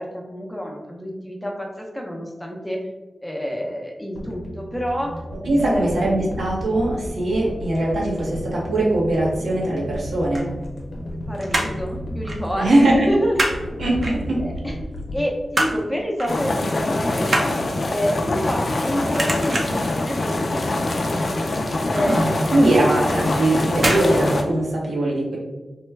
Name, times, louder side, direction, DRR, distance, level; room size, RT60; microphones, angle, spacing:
voice 1, 0.0-2.9 3.2-5.2 5.6-6.3 11.3-13.7 14.4-14.8 15.1-17.5 17.9-21.2 21.9-22.4 22.7-22.9, equal, 5° left, 0 dB, 0.7 m, -28 dB
sound 1, 4.2-16.5 16.8-16.9, equal, 90° left, 0.7 m, -33 dB
voice 2, 5.4-10.5 12.6-13.1 13.8-14.4 21.9-25.4, right 1 dB, 85° right, -4 dB, 0.9 m, -21 dB
sound 2, 10.1-11.1 11.4-11.9 12.2-12.5 12.7-13.6 14.0-14.6 15.0-15.8 16.2-16.4 16.7-18.8 19.1-19.9 20.3-20.7 20.9-21.0 21.4-21.5 21.9-22.0 22.9-23.1 23.7-24.1 24.4-24.5, right 1 dB, 55° right, 0.7 m, -25 dB
sound 3, 16.3-24.4, left 2 dB, 60° left, 0.4 m, -24 dB
3.1 x 2.2 x 3.2 m, 1.1 s
cardioid pair, 60°, 0 cm